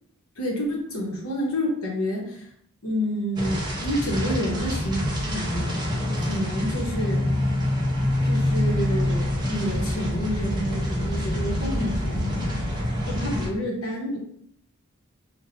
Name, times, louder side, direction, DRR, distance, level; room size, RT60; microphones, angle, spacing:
voice 1, 0.4-2.5 2.8-5.8 6.2-7.2 8.2-12.5 13.1-14.2, equal, 80° left, -2 dB, 1.1 m, -29 dB
sound 1, 3.4-13.5, left 1 dB, 20° right, 0.8 m, -26 dB
6.0 x 2.5 x 2.6 m, 0.68 s
head